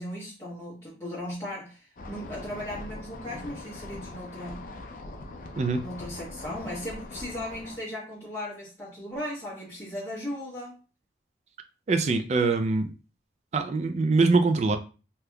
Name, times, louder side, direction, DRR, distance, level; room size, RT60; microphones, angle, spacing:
voice 1, 0.0-4.7 5.8-10.8, left 1 dB, 15° left, 1.0 m, -37 dB
sound 1, 2.0-7.8, left 2 dB, 45° left, 0.4 m, -41 dB
voice 2, 11.9-12.9 13.5-14.8, right 3 dB, 40° right, 0.3 m, -23 dB
3.4 x 2.8 x 2.3 m
head